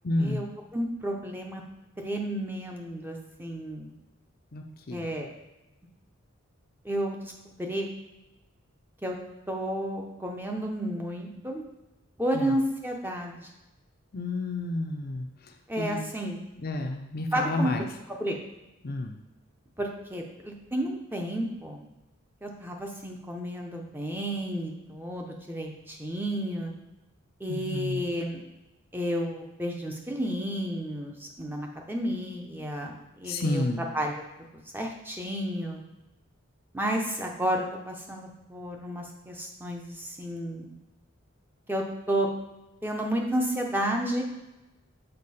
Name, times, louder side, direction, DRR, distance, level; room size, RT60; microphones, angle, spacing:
voice 1, 0.0-0.4 4.5-5.1 12.3-12.5 14.1-15.3 15.8-16.0 16.5-17.9 18.8-19.2 27.5-28.1 33.2-33.8, left 2 dB, 45° left, 4 dB, 0.6 m, -30 dB
voice 2, 0.7-1.6 2.0-3.9 4.9-5.3 6.8-7.9 9.0-9.2 9.5-11.6 12.2-13.5 15.7-16.4 17.3-17.7 18.1-18.4 19.8-21.8 22.4-26.7 27.4-28.4 28.9-34.1 34.7-35.8 36.7-40.7 41.7-42.3 42.8-44.2, right 1 dB, 10° right, 1 dB, 0.7 m, -31 dB
6.6 x 4.5 x 4.2 m, 0.99 s
head